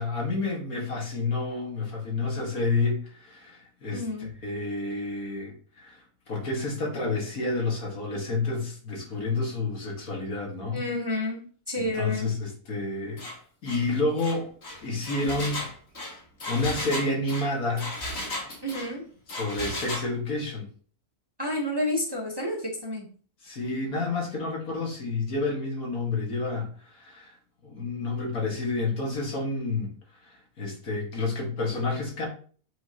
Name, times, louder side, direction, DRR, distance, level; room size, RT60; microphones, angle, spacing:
voice 1, 0.0-10.8 11.8-13.2 13.6-14.5 14.8-15.6 16.5-17.9 19.3-20.7 23.4-27.3 27.6-29.9 30.3-32.3, left 3 dB, 70° left, -1 dB, 2.4 m, -29 dB
voice 2, 3.9-4.3 10.7-12.3 18.6-19.0 21.4-23.1, left 1 dB, 20° right, 0 dB, 1.1 m, -30 dB
Engine, 13.2-13.4 13.7-13.9 14.2-18.9 19.3-20.1, left 1 dB, 45° left, 1.9 m, -35 dB
7.3 x 5.3 x 2.9 m, 0.43 s
omnidirectional pair, 1.6 m